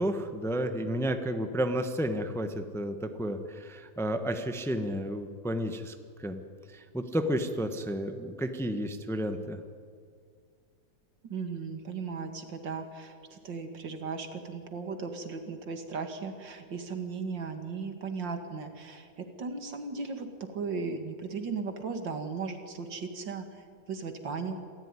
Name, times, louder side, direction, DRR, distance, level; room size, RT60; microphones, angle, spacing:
voice 1, 0.0-6.4 6.7-9.6, equal, ahead, 7 dB, 1.0 m, -32 dB
voice 2, 11.2-24.7, right 4 dB, 80° right, 7 dB, 2.7 m, -37 dB
27.0 x 14.5 x 9.9 m, 2.1 s
omnidirectional pair, 2.0 m